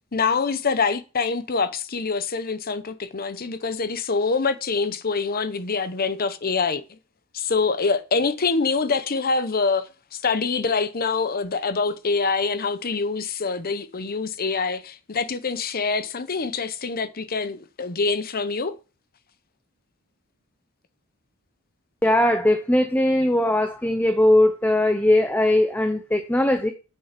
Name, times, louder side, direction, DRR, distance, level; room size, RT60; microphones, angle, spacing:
voice 1, 0.1-7.0 7.3-18.8, left 4 dB, 40° left, 0.8 m, -25 dB
voice 2, 22.0-26.7, left 1 dB, 10° left, 0.7 m, -20 dB
8.4 x 6.7 x 5.9 m
head